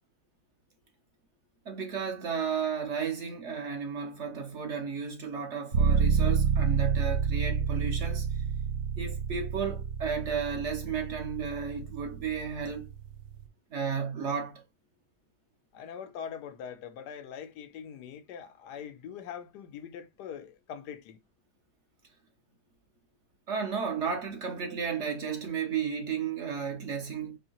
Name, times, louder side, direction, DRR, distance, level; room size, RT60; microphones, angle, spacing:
voice 1, 1.7-8.4 9.0-12.9 13.7-14.6 23.5-27.4, right 6 dB, 55° right, 0.9 m, -33 dB
sound 1, 5.7-13.5, right 6 dB, 75° right, 1.2 m, -29 dB
voice 2, 15.7-21.2, left 8 dB, 85° left, 1.3 m, -42 dB
4.3 x 2.7 x 2.9 m
omnidirectional pair, 1.7 m